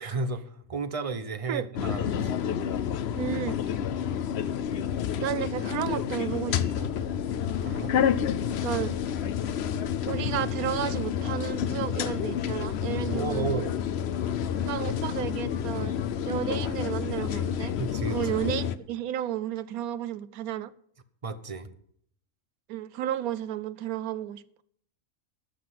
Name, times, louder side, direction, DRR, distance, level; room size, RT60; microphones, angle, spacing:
voice 1, 0.0-2.3 7.6-7.9 13.1-13.7 17.8-18.2 21.2-21.7, right 3 dB, 30° right, 0.8 m, -33 dB
sound 1, 1.7-18.8, left 8 dB, 55° left, 0.8 m, -29 dB
voice 2, 3.2-3.6 5.2-6.9 8.6-9.0 10.1-13.7 14.7-16.0 16.3-17.7 18.1-20.7 22.7-24.4, right 11 dB, 90° right, 1.1 m, -32 dB
13.0 x 6.0 x 9.3 m
omnidirectional pair, 1.5 m